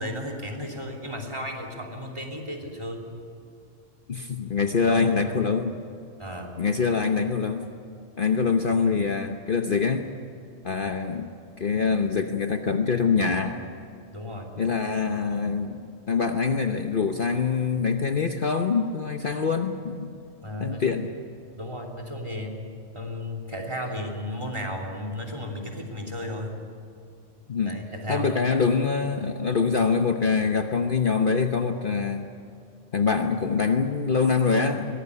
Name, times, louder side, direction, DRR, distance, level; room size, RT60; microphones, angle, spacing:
voice 1, 0.0-3.1 4.8-5.4 6.2-6.6 14.1-14.5 20.4-21.0 21.5-22.6 22.9-26.6 27.6-28.5, left 1 dB, 20° right, 3 dB, 3.2 m, -34 dB
voice 2, 4.1-5.8 6.6-7.7 8.2-10.1 10.6-11.3 11.6-13.6 14.6-15.8 16.1-20.1 20.6-21.2 27.5-27.8 28.1-32.3 32.9-35.0, left 5 dB, 45° left, 5 dB, 1.1 m, -24 dB
23.0 x 18.0 x 9.8 m, 2.5 s
omnidirectional pair, 1.3 m